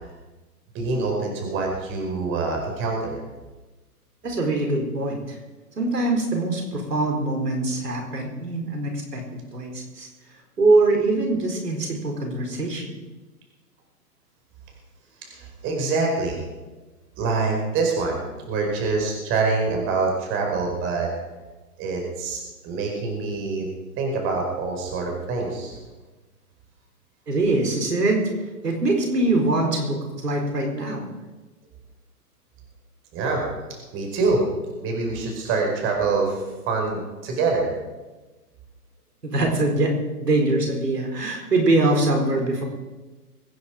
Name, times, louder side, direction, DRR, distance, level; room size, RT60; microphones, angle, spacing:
voice 1, 0.7-3.2 15.2-16.4 17.2-21.1 21.8-23.7 24.0-25.8 33.1-33.4 33.9-34.4 34.8-37.7, right 4 dB, 25° right, 1 dB, 4.9 m, -25 dB
voice 2, 4.2-5.4 5.8-9.2 9.5-10.1 10.6-13.0 27.3-31.0 39.2-39.9 40.2-42.6, right 2 dB, 80° right, 2 dB, 4.3 m, -23 dB
23.5 x 9.7 x 5.1 m, 1.2 s
hypercardioid pair, 130°, 47 cm